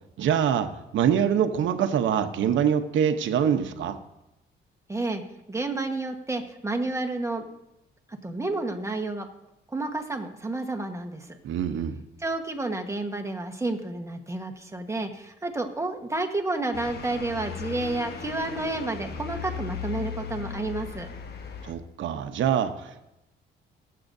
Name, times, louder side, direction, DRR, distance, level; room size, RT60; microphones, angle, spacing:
voice 1, 0.2-4.0 11.4-12.0 21.6-23.0, right 8 dB, 75° right, 8 dB, 0.9 m, -25 dB
voice 2, 4.9-5.2 5.5-7.5 8.2-9.3 9.7-11.4 12.2-21.1, right 2 dB, 15° right, 5 dB, 1.3 m, -30 dB
sound 1, 16.7-21.7, left 7 dB, 55° left, 1.2 m, -37 dB
21.5 x 7.7 x 2.7 m, 0.92 s
cardioid pair, 90°, 20 cm